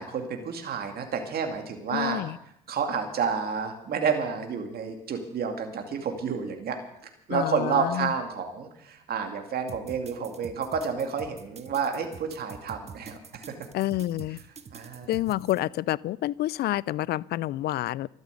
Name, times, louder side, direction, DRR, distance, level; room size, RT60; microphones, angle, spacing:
voice 1, 0.0-2.2 2.7-6.8 7.3-13.5 14.3-14.4 14.7-15.1, right 6 dB, 55° right, 2.5 m, -30 dB
voice 2, 1.9-2.3 7.3-8.1 13.7-14.4 15.1-18.1, left 15 dB, 60° left, 0.5 m, -28 dB
sound 1, 9.7-15.6, right 5 dB, 35° right, 1.4 m, -45 dB
13.0 x 10.5 x 8.3 m
supercardioid pair, 65°, 19 cm